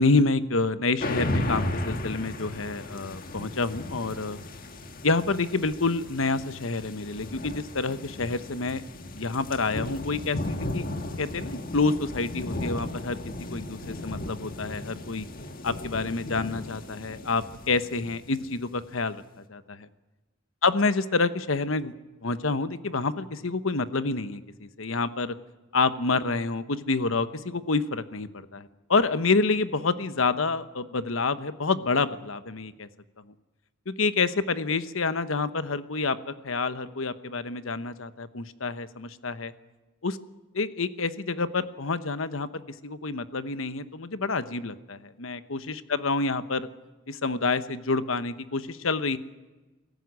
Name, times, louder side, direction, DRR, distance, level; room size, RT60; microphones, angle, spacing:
voice 1, 0.0-4.4 5.0-8.8 9.1-10.8 11.2-13.2 13.5-15.3 15.6-19.2 19.5-19.9 20.6-21.9 22.2-25.3 25.7-32.9 33.9-39.5 40.0-40.2 40.5-46.7 47.1-49.2, left 3 dB, 75° left, 12 dB, 1.1 m, -28 dB
sound 1, 1.0-18.8, left 1 dB, 45° left, 1.7 m, -35 dB
23.0 x 14.5 x 9.6 m, 1.2 s
head